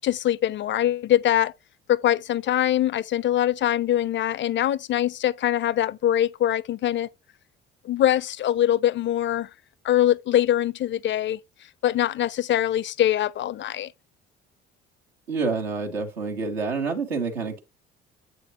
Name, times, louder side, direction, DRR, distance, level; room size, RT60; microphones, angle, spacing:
voice 1, 0.0-1.5 1.9-7.1 7.8-9.5 9.8-11.4 11.8-13.9, left 12 dB, 40° left, 0.5 m, -23 dB
voice 2, 15.3-17.6, right 4 dB, 80° right, 1.6 m, -28 dB
8.1 x 6.2 x 3.0 m
figure-of-eight pair, 50°, 31 cm